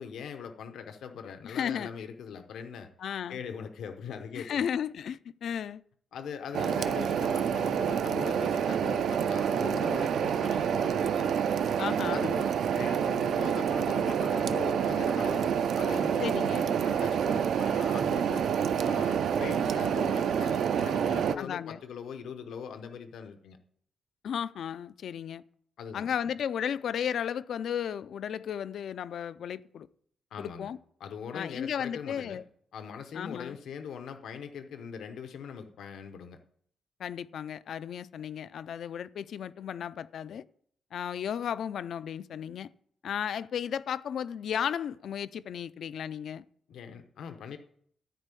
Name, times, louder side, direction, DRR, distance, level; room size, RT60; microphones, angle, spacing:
voice 1, 0.0-2.9 3.3-4.6 6.1-11.3 12.1-16.4 16.8-18.5 18.8-23.6 25.8-26.1 30.3-30.7 31.0-32.4 32.7-36.4 46.7-47.6, left 7 dB, 85° left, 1.0 m, -41 dB
voice 2, 1.4-1.9 3.0-3.4 4.4-5.8 11.8-12.3 16.2-16.8 21.4-21.8 24.2-25.4 25.9-29.9 30.4-30.8 31.3-32.4 33.1-33.6 37.0-40.4 40.9-42.7 43.0-46.4, left 8 dB, 60° left, 0.4 m, -34 dB
sound 1, 6.5-21.3, right 8 dB, 65° right, 0.5 m, -28 dB
13.5 x 4.5 x 8.4 m
wide cardioid pair, 165°, 0 cm